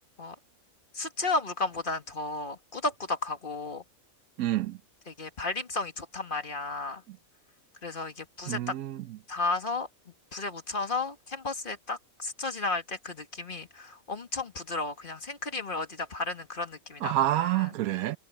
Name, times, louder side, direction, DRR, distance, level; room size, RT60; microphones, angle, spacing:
voice 1, 1.0-3.8 5.2-7.0 7.8-8.7 9.3-9.9 10.3-17.1, left 3 dB, 35° left, 2.1 m, -33 dB
voice 2, 4.4-4.8 7.1-7.2 8.5-9.2 17.0-18.2, right 14 dB, 85° right, 1.1 m, -28 dB
omnidirectional pair, 1.5 m